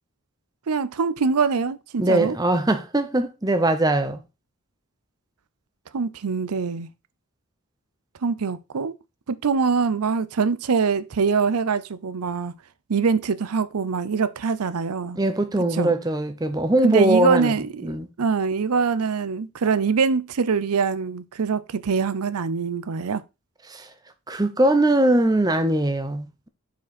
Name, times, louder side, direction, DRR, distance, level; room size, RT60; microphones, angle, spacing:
voice 1, 0.7-2.4 5.9-6.9 8.2-8.9 9.3-12.5 12.9-15.2 15.7-16.0 16.8-23.2, right 5 dB, 90° right, 0.6 m, -23 dB
voice 2, 2.0-4.2 15.2-17.5 17.8-18.1 23.7-23.9 24.3-26.5, right 1 dB, 15° right, 0.7 m, -21 dB
7.2 x 5.0 x 4.2 m
head